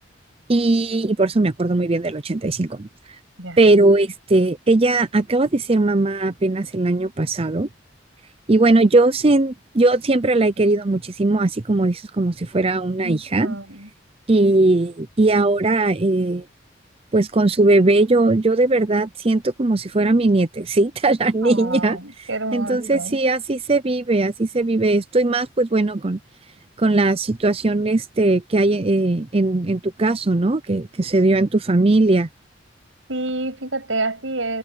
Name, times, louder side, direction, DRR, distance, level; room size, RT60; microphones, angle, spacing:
voice 1, 0.5-2.9 3.6-7.7 8.5-13.5 14.3-16.4 17.1-26.2 26.8-32.3, right 2 dB, 30° right, 0.6 m, -19 dB
voice 2, 13.0-13.9 21.4-23.2 33.1-34.6, right 2 dB, 90° right, 7.4 m, -28 dB
head